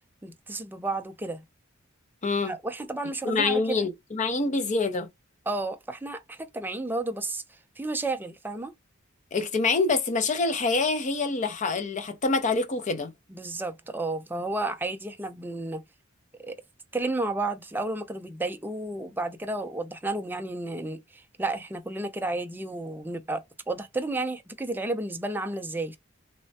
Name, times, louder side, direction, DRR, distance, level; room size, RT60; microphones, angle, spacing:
voice 1, 0.2-1.4 2.4-3.8 5.5-7.4 7.8-8.7 13.3-15.8 16.4-16.5 16.9-26.0, right 2 dB, 10° right, 0.4 m, -32 dB
voice 2, 2.2-2.5 3.2-5.1 9.3-13.1, left 3 dB, 35° left, 0.6 m, -26 dB
3.2 x 2.1 x 2.7 m
head